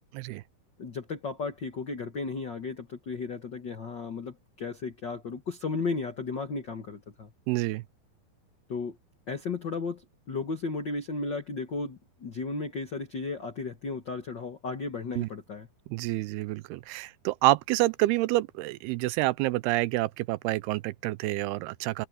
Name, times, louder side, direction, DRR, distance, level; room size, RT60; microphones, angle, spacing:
voice 1, 0.8-7.3 8.7-9.0 9.3-15.7, left 4 dB, 85° left, 0.9 m, -34 dB
voice 2, 7.5-7.8 15.2-15.3 15.9-22.1, right 19 dB, 85° right, 2.6 m, -28 dB
omnidirectional pair, 4.6 m